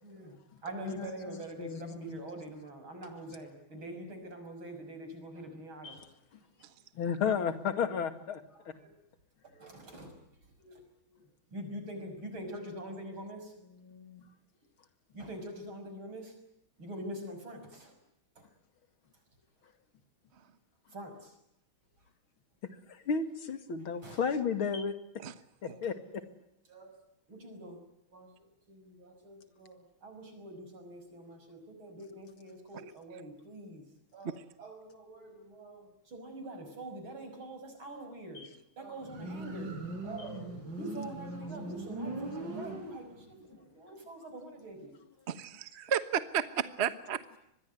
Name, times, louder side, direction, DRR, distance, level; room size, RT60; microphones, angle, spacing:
voice 1, 0.0-0.4 0.6-6.0 9.5-10.2 10.6-10.8 11.1-11.2 11.5-13.5 15.1-16.3 16.8-17.9 20.9-21.3 24.0-24.2 26.7-26.9 27.3-27.8 28.1-28.3 28.7-33.8 34.1-38.5 38.8-39.7 40.0-40.4 40.8-44.9, right 1 dB, 75° right, 7 dB, 6.8 m, -45 dB
voice 2, 0.8-2.2 5.8-6.1 6.9-8.4 8.7-8.8 13.7-14.2 22.9-24.9 25.6-26.2 38.3-38.5 43.9-44.0 44.3-44.4, left 6 dB, 85° left, 10 dB, 3.0 m, -34 dB
Motorcycle, 39.0-43.4, right 2 dB, 60° right, 4.9 m, -40 dB
voice 3, 45.3-47.4, right 8 dB, 40° right, 13 dB, 1.2 m, -33 dB
25.0 x 21.0 x 9.4 m, 0.80 s
omnidirectional pair, 2.2 m